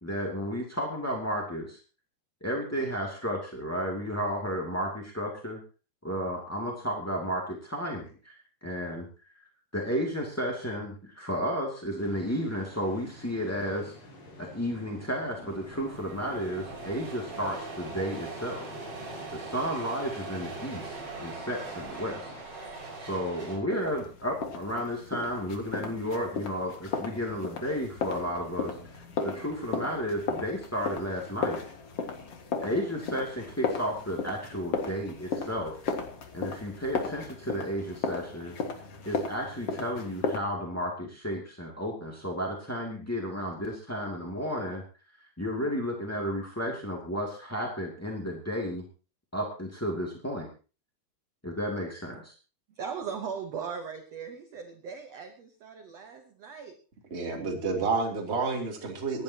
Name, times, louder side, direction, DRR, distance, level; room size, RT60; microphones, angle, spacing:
voice 1, 0.0-1.8 2.4-5.6 6.0-9.1 9.7-13.9 14.4-18.8 19.3-22.3 23.0-28.7 29.2-31.6 32.6-35.8 36.3-38.5 39.0-44.8 45.2-48.8 49.3-50.5 51.4-52.3, equal, 5° left, -2 dB, 1.1 m, -33 dB
sound 1, 12.0-22.4, left 1 dB, 75° left, 7.1 m, -51 dB
sound 2, 14.8-14.9 15.1-23.6, right 3 dB, 35° right, 7.4 m, -41 dB
sound 3, 23.7-40.4, left 5 dB, 50° left, 2.2 m, -35 dB
voice 2, 52.7-56.8 58.5-58.6, right 6 dB, 75° right, 6 dB, 1.5 m, -39 dB
voice 3, 57.1-59.2, right 4 dB, 20° right, 0 dB, 2.6 m, -29 dB
25.0 x 11.0 x 2.9 m, 0.35 s
omnidirectional pair, 4.7 m